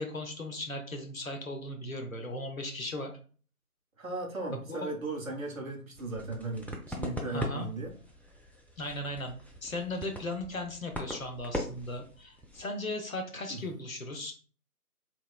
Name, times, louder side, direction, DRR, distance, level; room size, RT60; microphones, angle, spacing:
voice 1, 0.0-3.1 4.7-4.9 7.2-7.7 8.8-14.3, left 1 dB, 60° left, 4 dB, 0.6 m, -37 dB
voice 2, 4.0-7.9 13.5-13.6, right 2 dB, 60° right, 2 dB, 0.7 m, -37 dB
sound 1, 5.9-12.6, equal, 5° left, 0.3 m, -41 dB
2.8 x 2.0 x 2.3 m, 0.40 s
figure-of-eight pair, 175°, 46 cm